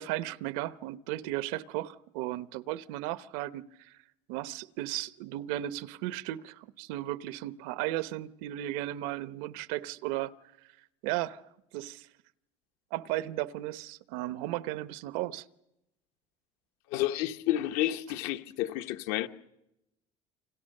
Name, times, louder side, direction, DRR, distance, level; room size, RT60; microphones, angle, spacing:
voice 1, 0.0-4.0 4.3-10.3 11.0-11.4 11.7-12.1 12.9-15.5, right 15 dB, 85° right, 0.9 m, -35 dB
voice 2, 16.9-19.3, left 13 dB, 75° left, 1.1 m, -30 dB
29.0 x 26.5 x 6.6 m
cardioid pair, 175°, 12 cm